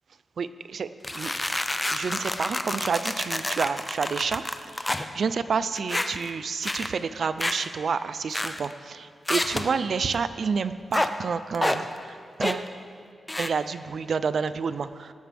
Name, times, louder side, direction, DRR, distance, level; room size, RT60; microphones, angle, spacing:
voice 1, 0.4-1.3 1.9-4.4 4.8-12.7 13.4-15.1, right 5 dB, 65° right, 13 dB, 0.4 m, -29 dB
sound 1, 1.0-5.1 5.7-6.3 6.6-6.9 7.4-7.7 8.3-8.7 9.3-9.7 10.9-11.1 11.5-11.8 12.4-12.7 13.3-13.5, left 1 dB, 15° left, 0.6 m, -28 dB
18.0 x 12.0 x 3.5 m, 2.2 s
wide cardioid pair, 100°, 0 cm